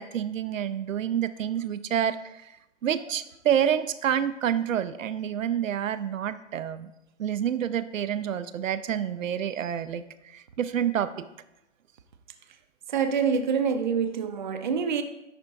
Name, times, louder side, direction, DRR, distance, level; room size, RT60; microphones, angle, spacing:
voice 1, 0.0-2.2 2.8-6.9 7.2-10.0 10.3-11.3, right 9 dB, 85° right, 0.6 m, -28 dB
voice 2, 12.9-15.0, right 6 dB, 40° right, 0.5 m, -26 dB
10.0 x 3.5 x 3.9 m
hypercardioid pair, 155°, 38 cm